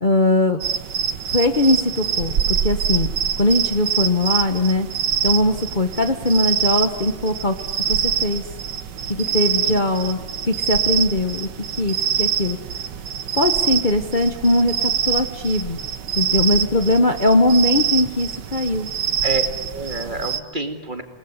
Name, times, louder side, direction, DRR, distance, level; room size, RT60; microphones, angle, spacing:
voice 1, 0.0-0.6 1.2-3.1 3.4-4.9 5.2-7.5 7.9-8.4 9.1-10.2 10.5-11.5 11.8-12.6 13.3-15.8 16.2-18.9, left 2 dB, 30° left, 6 dB, 1.2 m, -20 dB
sound 1, 0.6-20.4, right 8 dB, 70° right, 1.7 m, -25 dB
voice 2, 9.3-9.8 19.2-19.4 19.7-21.0, right 2 dB, 25° right, 6 dB, 2.1 m, -29 dB
28.5 x 19.5 x 9.7 m, 1.1 s
omnidirectional pair, 2.0 m